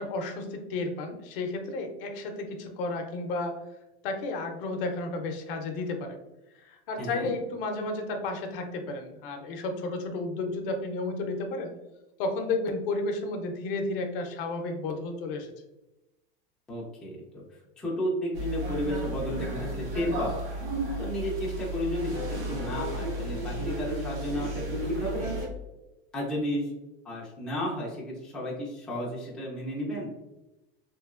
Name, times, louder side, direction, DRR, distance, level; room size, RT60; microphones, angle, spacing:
voice 1, 0.0-3.5 4.0-6.2 6.6-11.7 12.2-15.5, left 2 dB, 65° left, 4 dB, 0.7 m, -32 dB
voice 2, 7.0-7.3 16.7-17.4 17.8-20.5 21.0-25.3 26.1-26.7 27.0-30.1, equal, 5° left, -5 dB, 0.4 m, -33 dB
sound 1, 18.3-25.5, right 1 dB, 75° right, 1.5 m, -33 dB
3.1 x 2.8 x 2.4 m, 0.99 s
supercardioid pair, 160°, 29 cm